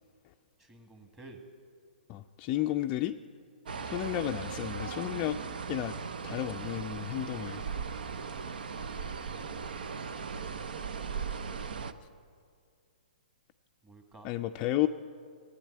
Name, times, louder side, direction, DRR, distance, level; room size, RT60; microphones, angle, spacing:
voice 1, 0.6-1.4 13.8-14.3, right 2 dB, 15° right, 3 dB, 1.8 m, -53 dB
voice 2, 2.1-3.2 3.9-5.4 5.7-5.9 6.2-7.6 14.2-14.9, left 14 dB, 30° left, 6 dB, 0.4 m, -32 dB
sound 1, 3.7-11.9, right 5 dB, 70° right, 0.7 m, -38 dB
15.0 x 9.6 x 8.8 m, 2.2 s
hypercardioid pair, 130°, 5 cm